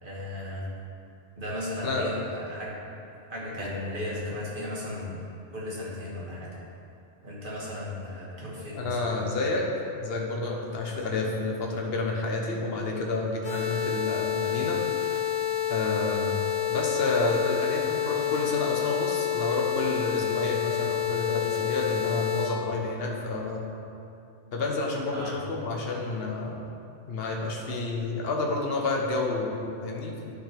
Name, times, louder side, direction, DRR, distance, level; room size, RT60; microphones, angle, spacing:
voice 1, 0.0-0.7 1.4-2.8 3.3-5.2 5.5-6.5 7.2-9.3 25.1-25.4, left 1 dB, 45° right, -6 dB, 1.9 m, -35 dB
voice 2, 8.7-9.6 10.0-14.8 15.7-16.4 16.7-23.7 24.5-26.6 27.1-30.3, left 3 dB, 55° left, -1 dB, 1.2 m, -29 dB
sound 1, 13.4-22.5, left 10 dB, 35° left, 1.2 m, -28 dB
10.5 x 5.8 x 3.5 m, 2.6 s
omnidirectional pair, 1.2 m